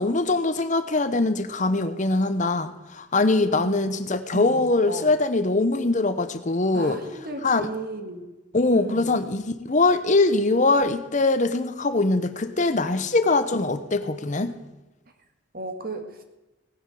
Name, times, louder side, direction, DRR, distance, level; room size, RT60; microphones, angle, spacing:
voice 1, 0.0-7.0 7.4-7.7 8.5-14.6, left 2 dB, 40° left, 11 dB, 0.9 m, -22 dB
voice 2, 3.3-3.9 4.3-4.6 4.9-5.1 6.7-8.3 8.7-9.1 15.5-16.2, right 2 dB, 50° right, 6 dB, 1.8 m, -35 dB
18.0 x 9.6 x 4.9 m, 1.1 s
head